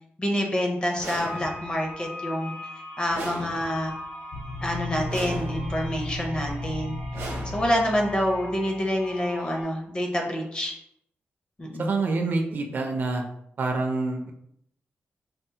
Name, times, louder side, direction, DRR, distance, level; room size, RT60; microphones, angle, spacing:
voice 1, 0.2-2.5 3.0-3.9 4.6-7.0 7.4-10.7 11.6-11.9, equal, 25° left, 1 dB, 0.5 m, -27 dB
sound 1, 1.0-1.8 3.1-4.0 5.1-5.9 7.1-8.0, right 2 dB, 75° right, 0.8 m, -38 dB
sound 2, 1.2-9.6, left 1 dB, 55° left, 0.9 m, -42 dB
sound 3, 4.3-9.0, left 1 dB, 85° left, 0.3 m, -34 dB
voice 2, 11.8-13.2 13.6-14.3, right 3 dB, 50° right, 3 dB, 0.4 m, -26 dB
4.2 x 2.0 x 2.7 m, 0.74 s
wide cardioid pair, 175°, 4 cm